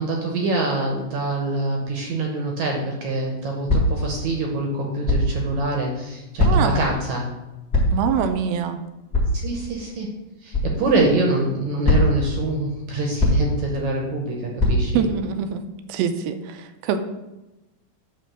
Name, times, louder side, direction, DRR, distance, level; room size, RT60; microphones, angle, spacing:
voice 1, 0.0-7.3 9.4-10.1 10.4-15.1, right 2 dB, 70° right, 0 dB, 1.9 m, -25 dB
sound 1, 3.7-4.1 5.0-5.3 6.4-6.8 7.7-8.1 9.1-9.3 10.5-10.7 11.8-12.3 13.2-13.6 14.6-14.8, left 1 dB, 35° left, 1.5 m, -19 dB
voice 2, 6.4-6.8 7.9-8.8 14.9-15.6 15.9-17.0, right 7 dB, 85° right, 9 dB, 2.4 m, -24 dB
9.3 x 3.7 x 6.6 m, 1.0 s
omnidirectional pair, 4.3 m